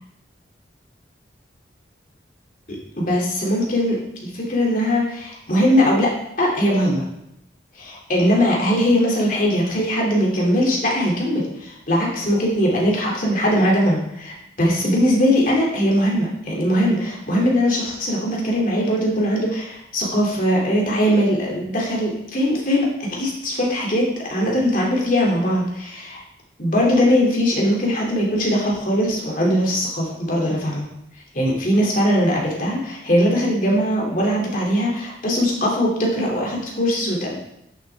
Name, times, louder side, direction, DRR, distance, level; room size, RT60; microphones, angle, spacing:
voice 1, 2.7-6.1 6.4-7.0 7.7-26.2 26.6-30.9 31.3-37.4, equal, 45° left, -2 dB, 2.5 m, -20 dB
10.5 x 7.0 x 3.4 m, 0.80 s
head